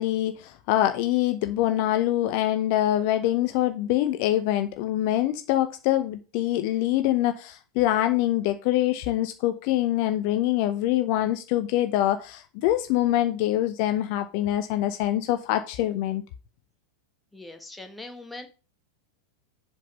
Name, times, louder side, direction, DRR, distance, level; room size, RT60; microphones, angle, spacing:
voice 1, 0.0-16.2, left 13 dB, 45° left, 0.7 m, -24 dB
voice 2, 17.3-18.5, left 2 dB, 5° left, 1.6 m, -41 dB
7.5 x 5.4 x 5.4 m
figure-of-eight pair, 90°, 0 cm